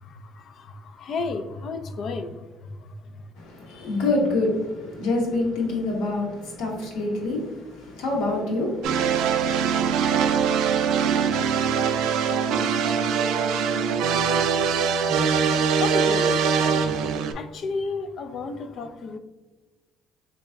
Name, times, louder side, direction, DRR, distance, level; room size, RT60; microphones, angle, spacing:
voice 1, 0.0-2.4 2.6-3.2 15.8-16.9 17.3-19.2, left 4 dB, 55° left, 0.4 m, -32 dB
voice 2, 3.4-10.3, left 2 dB, 85° left, 1.1 m, -27 dB
sound 1, 8.8-17.3, right 6 dB, 85° right, 0.3 m, -22 dB
3.9 x 3.4 x 2.3 m
cardioid pair, 100°, 0 cm